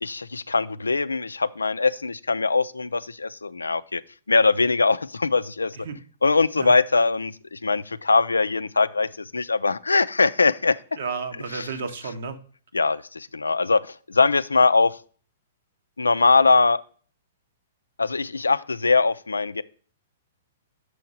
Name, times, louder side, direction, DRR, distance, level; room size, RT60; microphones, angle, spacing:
voice 1, 0.0-4.0 4.3-5.8 6.2-10.8 12.7-15.0 16.0-16.8 18.0-19.6, left 4 dB, 90° left, 15 dB, 0.4 m, -21 dB
voice 2, 10.9-12.4 12.8-13.0, right 5 dB, 65° right, 7 dB, 1.2 m, -32 dB
6.9 x 4.6 x 5.4 m, 0.42 s
hypercardioid pair, 115°, 0 cm